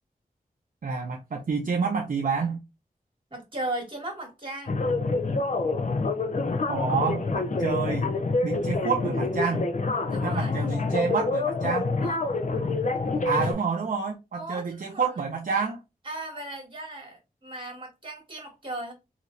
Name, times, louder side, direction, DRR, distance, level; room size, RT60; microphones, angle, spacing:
voice 1, 0.8-2.6 6.7-8.1 8.4-9.7 10.2-11.9 13.2-15.8, right 5 dB, 60° right, 0.6 m, -28 dB
voice 2, 3.3-4.8 10.1-10.6 12.0-12.2 13.4-13.6 14.3-15.1 16.1-18.9, right 1 dB, 35° right, 1.8 m, -37 dB
sound 1, 4.7-13.5, left 3 dB, 50° left, 0.6 m, -27 dB
3.0 x 2.8 x 2.6 m
wide cardioid pair, 70°, 16 cm